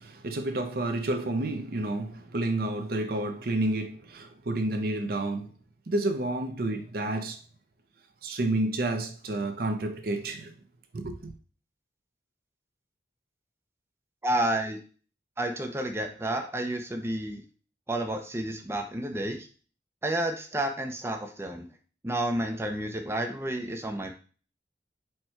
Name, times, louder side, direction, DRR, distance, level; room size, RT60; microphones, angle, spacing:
voice 1, 0.0-5.5 5.9-7.4 8.2-10.5 10.9-11.3, right 2 dB, 55° right, 0.6 m, -30 dB
voice 2, 14.2-14.8 15.4-17.4 17.9-19.5 20.0-21.7 22.0-24.1, right 1 dB, 15° right, 0.5 m, -30 dB
4.4 x 2.2 x 4.4 m
head